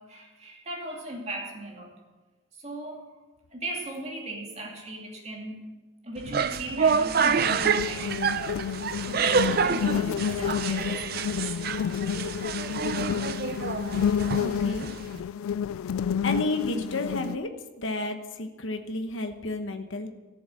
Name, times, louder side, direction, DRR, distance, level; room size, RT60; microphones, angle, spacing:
voice 1, 0.0-1.9 2.6-3.1 3.5-5.7 6.0-8.4 9.0-12.1, right 1 dB, 30° right, -1 dB, 2.5 m, -38 dB
sound 1, 6.2-15.2, right 6 dB, 45° right, 0.5 m, -28 dB
sound 2, 7.4-17.4, left 8 dB, 85° left, 0.3 m, -30 dB
voice 2, 14.4-14.9 16.2-17.5 17.8-20.1, left 2 dB, 70° left, 6 dB, 1.1 m, -31 dB
14.0 x 7.1 x 7.7 m, 1.2 s
head